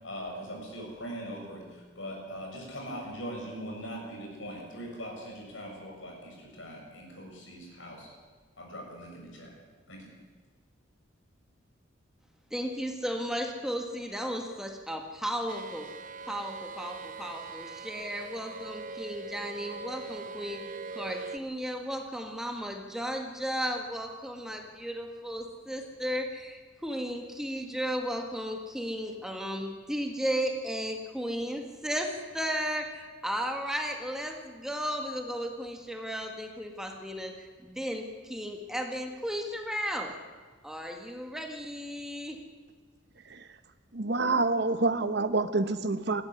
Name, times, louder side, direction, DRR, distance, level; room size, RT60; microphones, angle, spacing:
voice 1, 0.0-8.1 8.6-9.5 9.9-10.1, equal, 75° left, 0 dB, 7.4 m, -41 dB
voice 2, 12.5-15.9 16.3-20.6 20.9-40.1 40.6-42.4, equal, 5° right, 3 dB, 1.8 m, -34 dB
sound 1, 15.5-21.4, right 4 dB, 40° right, 0.8 m, -42 dB
voice 3, 43.9-46.2, right 3 dB, 60° right, 10 dB, 1.2 m, -27 dB
19.5 x 15.5 x 9.6 m, 1.5 s
head